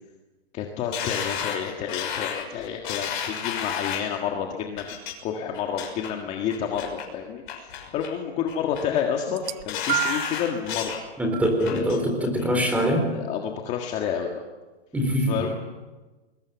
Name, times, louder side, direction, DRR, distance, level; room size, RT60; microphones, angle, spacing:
voice 1, 0.5-4.8 5.2-10.9 11.7-11.8 12.2-12.3 13.1-14.4 15.3-15.5, left 8 dB, 20° left, 2 dB, 1.7 m, -29 dB
sound 1, 0.9-4.2 4.8-5.1 5.5-6.1 6.5-7.1 7.5-8.1 8.5-9.0 9.4-11.0 11.4-12.0 12.4-12.5, left 8 dB, 50° left, 6.0 m, -32 dB
sound 2, 9.3-10.4 11.3-11.5 12.5-12.6, right 13 dB, 45° right, 1.0 m, -29 dB
voice 2, 11.2-13.1 14.9-15.4, equal, 5° right, 4 dB, 4.0 m, -23 dB
29.0 x 21.5 x 7.1 m, 1.2 s
hypercardioid pair, 155°, 32 cm